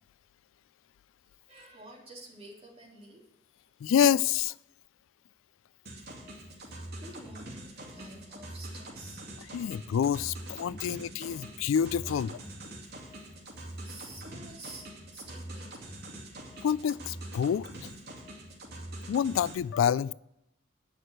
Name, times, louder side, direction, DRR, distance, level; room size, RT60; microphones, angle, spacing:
voice 1, 1.5-3.6 6.6-9.3 9.6-9.7 10.7-10.8 11.5-11.6 12.0-12.1 13.0-13.1 13.8-14.9 15.1-16.0, right 2 dB, 30° right, -2 dB, 3.3 m, -50 dB
voice 2, 3.8-4.5 9.5-12.4 16.6-17.9 19.1-20.1, left 8 dB, 90° left, 21 dB, 0.3 m, -27 dB
sound 1, 5.9-19.6, right 1 dB, 55° right, 2.6 m, -44 dB
9.5 x 6.3 x 7.9 m, 0.83 s
head